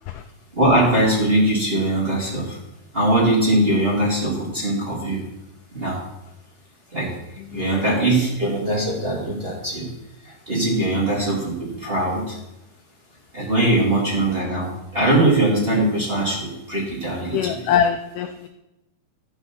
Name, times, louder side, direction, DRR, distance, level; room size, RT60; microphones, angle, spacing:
voice 1, 0.5-2.6 2.9-5.2 5.7-6.0 6.9-7.1 7.5-9.9 10.2-12.4 13.3-17.6, right 1 dB, 20° right, -5 dB, 1.7 m, -21 dB
voice 2, 7.5-7.9 17.3-18.5, left 8 dB, 90° left, 7 dB, 1.8 m, -23 dB
13.5 x 5.3 x 5.9 m, 0.90 s
omnidirectional pair, 4.4 m